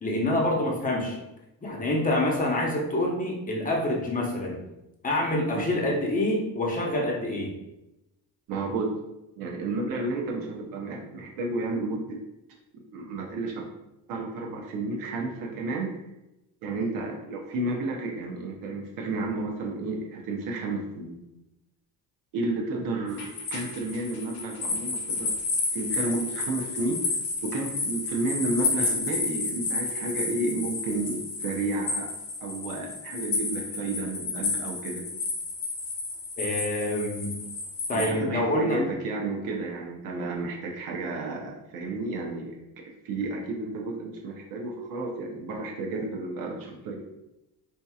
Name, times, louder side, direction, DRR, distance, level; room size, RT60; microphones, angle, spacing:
voice 1, 0.0-1.2 1.6-4.6 5.0-7.6 36.4-37.4 37.9-38.9, left 1 dB, 20° left, 0 dB, 0.8 m, -26 dB
voice 2, 8.5-8.9 9.4-12.2 12.7-13.7 14.1-15.9 16.6-21.2 22.3-25.3 25.7-27.1 27.4-32.1 32.4-35.0 37.9-47.0, right 2 dB, 65° right, -1 dB, 0.7 m, -32 dB
sound 1, 23.1-38.1, left 3 dB, 75° left, 1.1 m, -31 dB
4.4 x 2.8 x 2.3 m, 0.93 s
cardioid pair, 115°, 36 cm